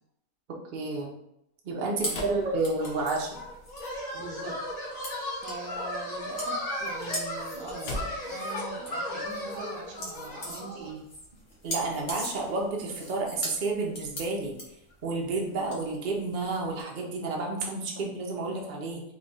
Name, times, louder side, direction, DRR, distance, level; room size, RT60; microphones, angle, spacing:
voice 1, 0.7-1.1 1.6-3.4 11.6-14.6 15.0-19.0, right 3 dB, 50° right, -1 dB, 0.6 m, -30 dB
sound 1, 2.0-16.8, equal, 50° left, 1.2 m, -41 dB
voice 2, 2.0-2.6 4.1-4.6 5.4-8.0 8.3-11.0, right 4 dB, 85° right, 1 dB, 1.3 m, -42 dB
sound 2, 2.1-3.5 6.8-8.4, left 1 dB, 70° left, 0.6 m, -40 dB
sound 3, 2.8-10.9, left 1 dB, 30° left, 1.1 m, -36 dB
3.4 x 2.3 x 3.9 m, 0.80 s
omnidirectional pair, 1.7 m